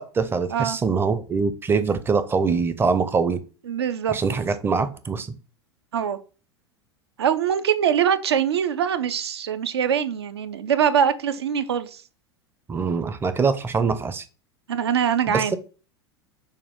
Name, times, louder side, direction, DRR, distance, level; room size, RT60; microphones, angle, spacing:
voice 1, 0.0-3.4 4.1-5.3 12.7-14.2 15.3-15.6, right 5 dB, 15° right, 0.5 m, -23 dB
voice 2, 3.7-4.2 5.9-6.2 7.2-12.0 14.7-15.6, right 8 dB, 70° right, 0.5 m, -23 dB
6.4 x 2.3 x 3.5 m
figure-of-eight pair, 85°, 14 cm